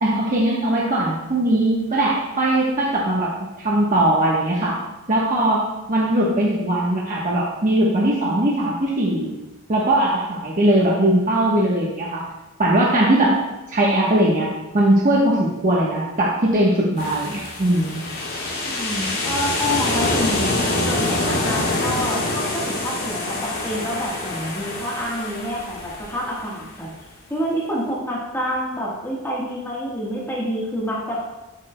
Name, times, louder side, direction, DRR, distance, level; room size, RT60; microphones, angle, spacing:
voice 1, 0.0-3.3 3.6-4.8 5.1-9.3 9.7-12.2 12.6-13.4 13.7-18.0, right 1 dB, 35° right, -5 dB, 1.1 m, -20 dB
sound 1, 17.0-26.7, left 2 dB, 65° left, 2.2 m, -25 dB
voice 2, 18.6-26.9 27.3-31.2, equal, 10° left, -5 dB, 1.4 m, -28 dB
10.5 x 8.1 x 2.2 m, 1.0 s
head